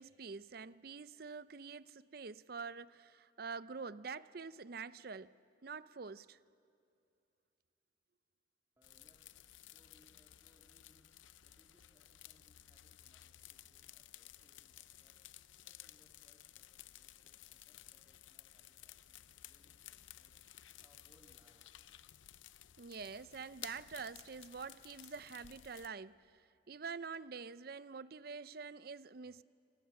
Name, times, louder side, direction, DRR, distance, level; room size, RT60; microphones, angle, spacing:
voice 1, 0.0-5.3 5.6-6.4 22.8-29.4, right 5 dB, 50° right, 0.5 m, -46 dB
sound 1, 8.8-25.9, left 13 dB, 85° left, 0.6 m, -56 dB
voice 2, 8.8-11.1 11.4-15.2 15.6-21.7, equal, 15° right, 2.7 m, -73 dB
29.0 x 26.0 x 7.1 m
head